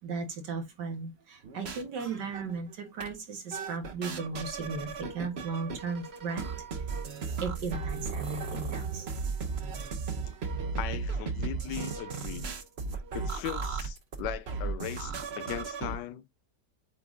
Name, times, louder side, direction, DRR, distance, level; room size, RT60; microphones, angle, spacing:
voice 1, 0.0-6.4 7.4-9.1, right 4 dB, 90° right, 2.2 m, -36 dB
sound 1, 1.4-2.7 3.0-3.1 3.5-16.0, right 5 dB, 45° right, 1.0 m, -35 dB
voice 2, 10.7-12.5 13.1-16.3, left 11 dB, 85° left, 1.3 m, -38 dB
8.1 x 3.7 x 3.7 m
omnidirectional pair, 1.8 m